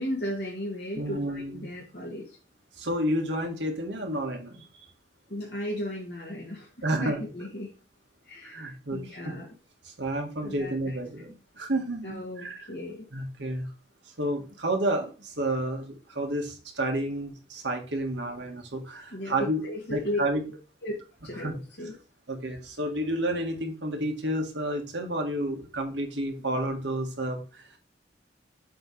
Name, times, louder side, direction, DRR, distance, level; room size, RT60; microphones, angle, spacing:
voice 1, 0.0-2.4 5.3-7.7 8.2-9.5 10.4-11.0 12.0-13.1 19.1-20.2 20.8-20.9 21.2-22.0, left 1 dB, 75° left, -4 dB, 1.9 m, -35 dB
voice 2, 1.0-1.8 2.8-4.9 6.8-7.2 8.4-9.3 9.9-12.6 13.1-13.7 14.2-19.6 19.9-20.4 21.4-21.5 22.3-27.8, right 1 dB, 90° right, 3 dB, 1.7 m, -30 dB
7.7 x 3.2 x 5.4 m, 0.33 s
head